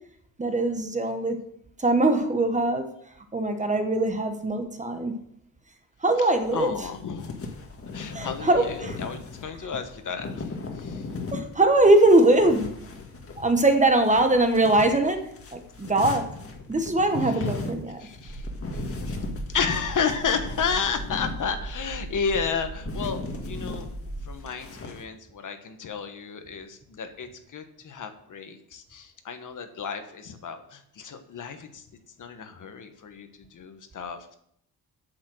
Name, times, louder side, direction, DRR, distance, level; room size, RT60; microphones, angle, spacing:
voice 1, 0.4-1.4 1.8-2.9 3.3-5.1 6.0-6.9 8.1-9.0 9.6-9.7 11.3-12.7 13.4-15.2 15.5-16.2 16.7-18.0, right 2 dB, 20° right, 6 dB, 1.2 m, -21 dB
voice 2, 6.2-7.5 7.8-11.1 17.3-17.5 18.0-18.5 18.7-18.8 19.5-23.9 24.2-31.9 32.2-34.4, left 6 dB, 55° left, 7 dB, 1.4 m, -32 dB
sound 1, 6.4-25.0, left 3 dB, 35° left, 1.8 m, -38 dB
sound 2, 18.3-24.3, right 1 dB, 35° right, 3.0 m, -37 dB
8.9 x 7.4 x 6.3 m, 0.70 s
cardioid pair, 135°, 38 cm